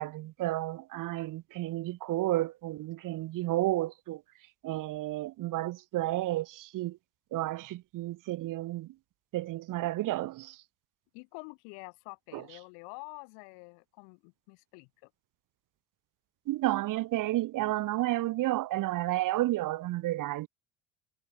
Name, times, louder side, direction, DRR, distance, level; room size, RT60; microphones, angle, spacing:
voice 1, 0.0-4.2 4.6-6.9 7.3-8.9 9.3-10.5 16.5-20.5, right 16 dB, 55° right, 0.8 m, -31 dB
voice 2, 11.1-15.1, left 38 dB, 80° left, 4.9 m, -47 dB
supercardioid pair, 75°, 39 cm